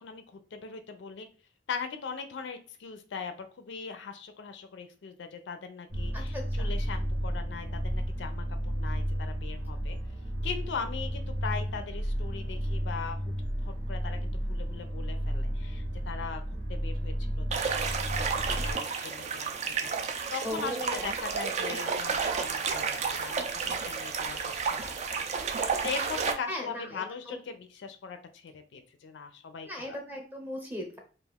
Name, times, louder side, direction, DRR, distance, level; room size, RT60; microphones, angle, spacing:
voice 1, 0.0-1.3 1.7-10.0 10.4-13.3 13.6-16.4 16.7-19.9 20.3-25.2 25.8-30.0, left 5 dB, 70° left, 8 dB, 0.4 m, -40 dB
sound 1, 5.9-18.7, equal, 85° right, 0.9 m, -32 dB
voice 2, 6.1-6.7 20.4-21.2 26.5-27.4 29.6-31.0, equal, 10° right, 0 dB, 0.7 m, -38 dB
sound 2, 17.5-26.3, right 5 dB, 40° right, 0.3 m, -31 dB
2.4 x 2.3 x 3.2 m, 0.38 s
head